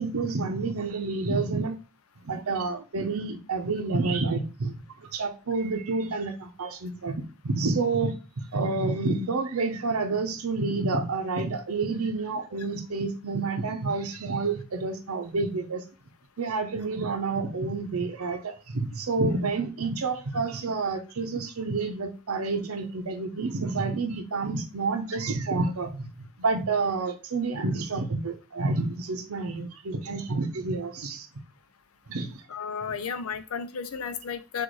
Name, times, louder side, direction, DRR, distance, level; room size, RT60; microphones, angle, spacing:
voice 1, 0.0-1.8 2.2-7.1 7.4-15.8 16.4-31.3 32.1-32.4, right 3 dB, 85° right, 0.7 m, -29 dB
voice 2, 32.5-34.6, left 6 dB, 80° left, 0.6 m, -33 dB
6.2 x 2.5 x 3.1 m
head